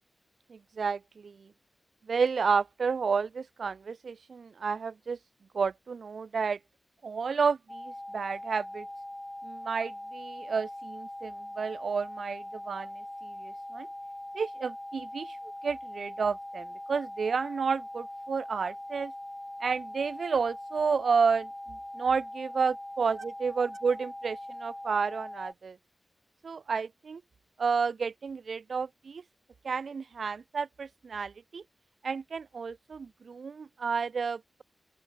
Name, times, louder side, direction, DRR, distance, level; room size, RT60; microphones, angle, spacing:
voice 1, 0.5-1.5 2.1-5.2 5.5-6.6 7.0-8.9 9.4-13.9 14.3-15.4 15.6-19.1 19.6-25.8 26.4-27.2 27.6-29.2 29.6-31.6 32.0-34.6, right 5 dB, 75° right, 1.1 m, -31 dB
sound 1, 7.7-25.5, left 1 dB, 10° left, 1.9 m, -42 dB
open air
wide cardioid pair, 70°, 0 cm